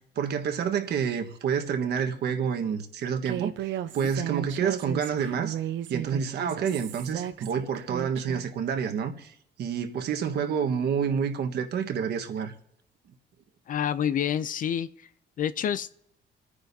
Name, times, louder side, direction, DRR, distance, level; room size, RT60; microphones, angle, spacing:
voice 1, 0.1-5.6 5.9-12.5, right 7 dB, 60° right, 1.4 m, -28 dB
Human voice, 3.2-8.5, right 11 dB, 85° right, 0.7 m, -34 dB
voice 2, 13.7-15.1 15.4-15.9, left 9 dB, 45° left, 0.4 m, -28 dB
28.0 x 9.9 x 2.7 m
cardioid pair, 160°, 19 cm